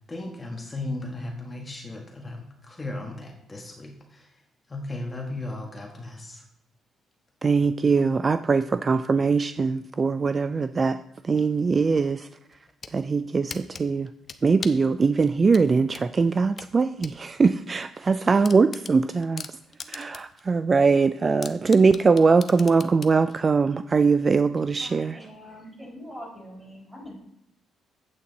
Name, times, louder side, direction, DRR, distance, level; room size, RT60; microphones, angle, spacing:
voice 1, 0.1-4.4 4.7-6.4, left 2 dB, 20° left, 1.4 m, -36 dB
voice 2, 7.4-11.0 11.3-12.3 12.9-14.1 14.4-19.5 19.9-25.2, right 4 dB, 35° right, 0.3 m, -21 dB
sound 1, 12.5-13.0 13.5-14.9 15.5-17.2 17.5-17.6 18.0-18.1 18.4-20.4 20.8-20.9 21.4-23.2, left 5 dB, 40° left, 0.8 m, -39 dB
voice 3, 24.8-27.1, equal, 10° right, 4.2 m, -43 dB
8.4 x 8.4 x 4.0 m
cardioid pair, 90°, 0 cm